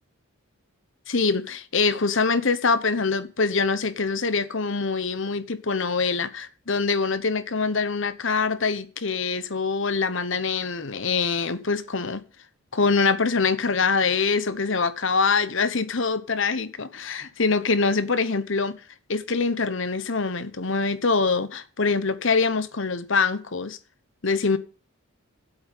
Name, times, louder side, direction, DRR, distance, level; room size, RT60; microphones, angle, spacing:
voice 1, 1.1-12.2 12.7-18.7 19.1-23.8 24.2-24.6, left 4 dB, 60° left, 1.0 m, -24 dB
8.8 x 8.3 x 8.4 m
head